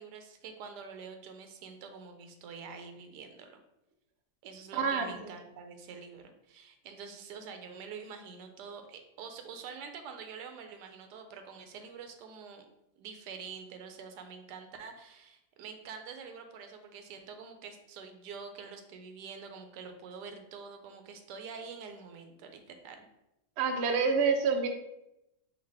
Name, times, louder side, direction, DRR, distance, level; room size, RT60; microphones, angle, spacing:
voice 1, 0.0-3.6 4.4-12.7 13.0-23.1, right 5 dB, 90° right, 6 dB, 1.2 m, -46 dB
voice 2, 4.8-5.3 23.6-24.7, right 5 dB, 65° right, 4 dB, 0.6 m, -27 dB
4.8 x 2.6 x 3.4 m, 0.88 s
omnidirectional pair, 1.8 m